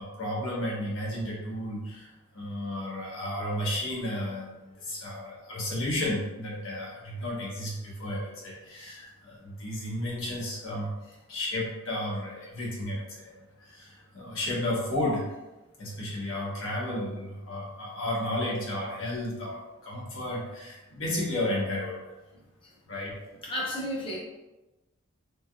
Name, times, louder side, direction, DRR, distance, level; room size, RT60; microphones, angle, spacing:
voice 1, 0.0-2.1 2.3-10.9 11.3-13.3 13.6-15.2 15.8-22.0 22.9-23.1, left 1 dB, 75° left, -4 dB, 1.0 m, -33 dB
voice 2, 23.4-24.2, equal, 25° left, -4 dB, 0.7 m, -32 dB
3.3 x 2.6 x 2.2 m, 1.1 s
head